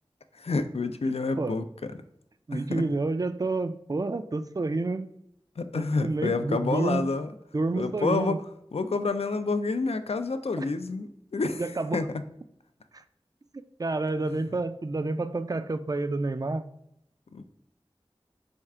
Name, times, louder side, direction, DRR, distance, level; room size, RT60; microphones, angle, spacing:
voice 1, 0.3-1.9 2.5-2.8 5.6-7.3 7.8-8.4 8.7-12.2 14.3-14.4 17.3-17.4, left 3 dB, 80° left, 10 dB, 0.4 m, -29 dB
voice 2, 2.5-5.1 5.7-7.1 7.5-8.4 10.6-10.7 11.5-12.0 12.9-13.0 13.8-16.7, right 2 dB, 35° right, 11 dB, 0.3 m, -29 dB
4.3 x 2.4 x 4.6 m, 0.77 s
wide cardioid pair, 45°, 10 cm